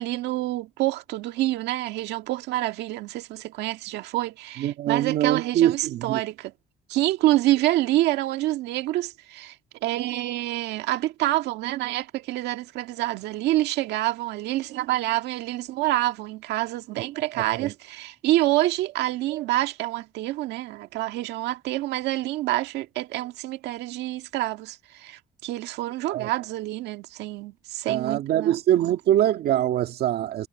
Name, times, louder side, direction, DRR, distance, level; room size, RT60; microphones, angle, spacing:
voice 1, 0.0-6.5 6.9-9.6 9.8-29.0, right 16 dB, 85° right, 1.9 m, -27 dB
voice 2, 4.6-6.2 17.3-17.7 26.1-26.3 27.9-30.5, right 12 dB, 70° right, 2.0 m, -23 dB
cardioid pair, 110°, 17 cm